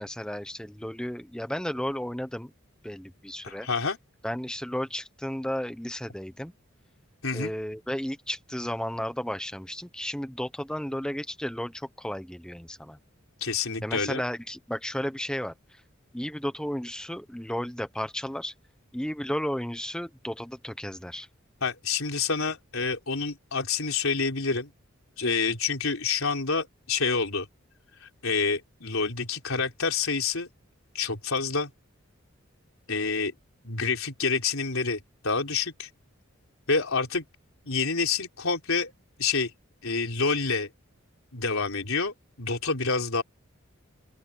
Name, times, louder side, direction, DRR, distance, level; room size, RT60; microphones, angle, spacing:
voice 1, 0.0-2.5 2.8-3.7 4.2-6.5 7.3-13.0 13.8-15.5 16.1-18.5 18.9-21.3, equal, 5° left, 0.9 m, -33 dB
voice 2, 3.4-4.0 7.2-7.5 13.4-14.2 21.6-24.7 25.2-27.5 28.2-30.5 30.9-31.7 32.9-33.3 33.6-35.9 36.7-37.2 37.6-38.9 39.2-39.5 39.8-40.7 41.3-43.2, left 4 dB, 85° left, 3.9 m, -28 dB
open air
head